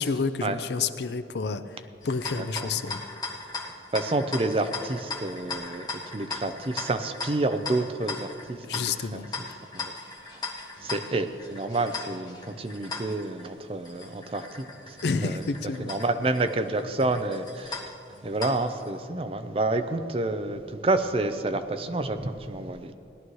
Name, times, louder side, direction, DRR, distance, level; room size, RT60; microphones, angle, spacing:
voice 1, 0.0-1.6 2.0-3.0 8.6-9.3 15.0-15.9, left 4 dB, 65° left, 0.5 m, -29 dB
sound 1, 2.0-18.9, left 3 dB, 20° left, 1.0 m, -38 dB
voice 2, 2.4-2.7 3.9-8.8 9.1-9.2 9.7-9.9 10.8-15.4 15.8-17.7 18.2-22.9, right 2 dB, 30° right, 0.5 m, -29 dB
18.0 x 11.5 x 3.1 m
head